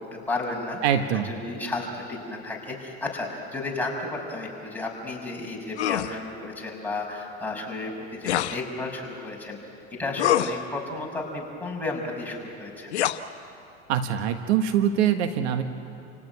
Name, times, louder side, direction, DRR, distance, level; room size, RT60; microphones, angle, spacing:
voice 1, 0.0-0.8 1.1-9.6 9.9-12.9, left 2 dB, 5° left, -2 dB, 6.3 m, -33 dB
voice 2, 0.8-1.3 13.9-15.6, right 9 dB, 80° right, 8 dB, 1.6 m, -23 dB
sound 1, 5.8-6.1 8.2-8.6 10.2-10.6 12.9-13.2, left 12 dB, 90° left, 1.0 m, -24 dB
28.5 x 17.5 x 9.5 m, 2.8 s
hypercardioid pair, 95°, 33 cm